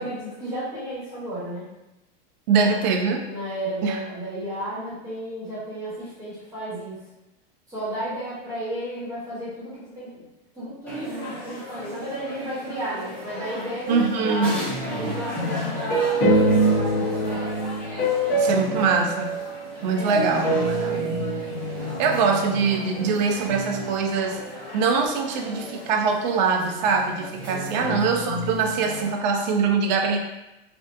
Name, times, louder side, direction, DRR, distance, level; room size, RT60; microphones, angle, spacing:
voice 1, 0.0-1.7 2.5-2.9 3.3-7.0 7.7-10.2 10.5-14.5 15.0-16.2 16.7-17.4 19.9-21.2 27.5-28.0, right 1 dB, 10° right, -12 dB, 1.3 m, -33 dB
voice 2, 2.5-3.2 3.8-4.0 13.9-14.6 18.4-19.3 19.8-21.2 22.0-24.4 24.7-30.2, right 5 dB, 50° right, 2 dB, 0.5 m, -23 dB
sound 1, 10.9-29.1, left 1 dB, 5° left, 0.5 m, -34 dB
sound 2, 15.9-19.7 20.1-22.2, right 2 dB, 55° left, 1.1 m, -24 dB
3.3 x 2.4 x 2.7 m, 0.95 s
supercardioid pair, 160°, 30 cm